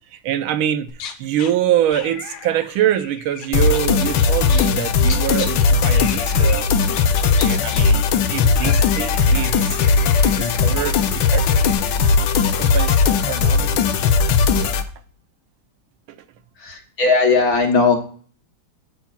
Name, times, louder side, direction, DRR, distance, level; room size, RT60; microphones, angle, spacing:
voice 1, 0.0-6.7 7.3-11.7 12.5-13.9 16.1-16.2, right 11 dB, 85° right, 1.5 m, -25 dB
sound 1, 0.9-1.5 1.9-5.5 5.9-6.6 6.9-11.7, left 7 dB, 85° left, 1.8 m, -36 dB
sound 2, 3.5-14.8, left 5 dB, 70° left, 1.2 m, -18 dB
voice 2, 16.6-18.0, left 4 dB, 50° left, 1.5 m, -17 dB
13.0 x 5.8 x 2.3 m
omnidirectional pair, 2.3 m